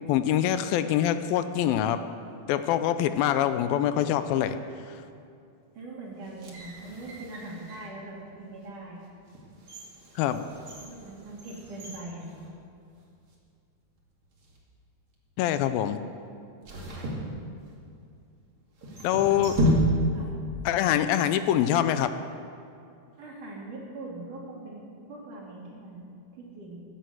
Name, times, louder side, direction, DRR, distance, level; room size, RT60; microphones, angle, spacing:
voice 1, 0.1-2.0 2.5-4.6 4.9-5.0 10.2-10.4 15.4-16.0 19.0-19.5 20.7-22.1, left 11 dB, 80° left, 11 dB, 2.4 m, -24 dB
voice 2, 5.7-9.0 10.8-12.3 19.1-19.3 20.1-20.3 23.2-26.8, right 2 dB, 55° right, -3 dB, 4.2 m, -42 dB
sound 1, 6.2-8.0 8.6-8.7 9.3-13.0 13.3-13.4 14.2-14.6 16.6-18.0 18.8-20.4 20.6-20.7, equal, 40° right, 2.7 m, -31 dB
15.5 x 11.0 x 7.8 m, 2.4 s
omnidirectional pair, 4.3 m